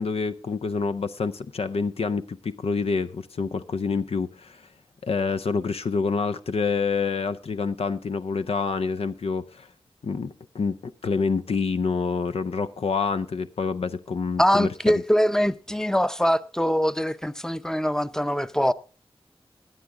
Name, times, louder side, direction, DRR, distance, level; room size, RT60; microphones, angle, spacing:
voice 1, 0.0-4.7 5.0-9.7 10.0-14.9, left 4 dB, 80° left, 0.5 m, -27 dB
voice 2, 14.4-18.7, equal, 5° left, 0.6 m, -23 dB
16.5 x 10.0 x 3.6 m
cardioid pair, 50°, 10 cm